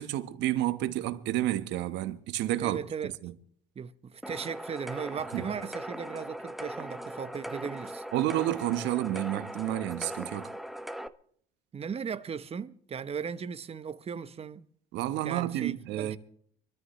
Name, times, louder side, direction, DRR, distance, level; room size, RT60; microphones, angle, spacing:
voice 1, 0.0-2.8 3.2-3.3 5.3-5.4 8.1-10.5 14.9-16.2, right 14 dB, 70° right, 1.4 m, -30 dB
voice 2, 2.6-3.2 3.8-8.0 11.7-14.7 15.2-16.2, right 6 dB, 30° right, 1.0 m, -37 dB
sound 1, 4.2-11.1, equal, ahead, 1.0 m, -40 dB
25.0 x 13.5 x 3.3 m
supercardioid pair, 85°, 19 cm